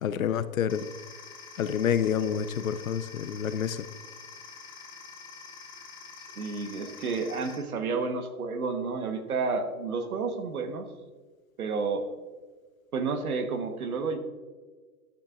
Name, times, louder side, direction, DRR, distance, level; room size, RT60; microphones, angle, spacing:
voice 1, 0.0-0.9 1.6-3.9, left 8 dB, 65° left, 13 dB, 0.7 m, -28 dB
sound 1, 0.7-7.6, left 5 dB, 25° left, 0.9 m, -46 dB
voice 2, 6.4-10.9 11.6-12.1 12.9-14.2, right 4 dB, 80° right, 6 dB, 1.5 m, -30 dB
12.0 x 8.5 x 2.6 m, 1.4 s
hypercardioid pair, 180°, 43 cm